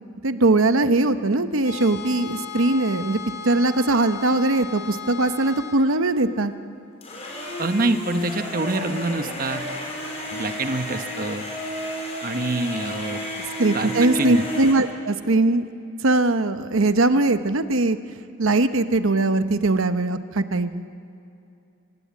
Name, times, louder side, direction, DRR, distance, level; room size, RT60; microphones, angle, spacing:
voice 1, 0.2-3.2 3.4-6.5 13.6-15.7 16.0-18.0 18.4-20.8, right 2 dB, 70° right, 10 dB, 0.9 m, -20 dB
sound 1, 1.6-5.8, left 6 dB, 55° left, 3.2 m, -36 dB
sound 2, 7.0-14.7, equal, 30° left, 4.6 m, -32 dB
voice 2, 7.6-9.6 10.3-11.4 12.2-13.2 13.7-14.5, right 2 dB, 40° right, 8 dB, 1.0 m, -26 dB
26.0 x 18.0 x 8.4 m, 2.6 s
head